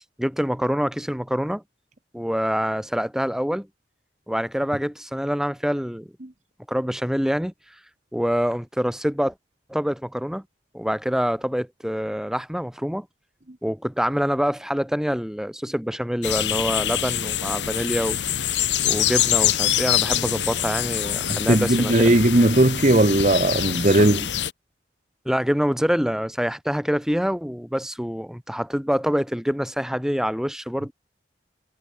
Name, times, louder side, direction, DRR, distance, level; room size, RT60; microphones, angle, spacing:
voice 1, 0.2-1.6 2.1-3.7 4.3-6.1 6.7-7.5 8.1-9.3 9.7-10.4 10.7-13.0 13.6-18.4 18.8-22.1 25.2-30.9, equal, 5° right, 1.3 m, -25 dB
sound 1, 16.2-24.5, left 11 dB, 90° left, 1.3 m, -25 dB
voice 2, 21.3-24.3, right 1 dB, 45° right, 1.4 m, -18 dB
head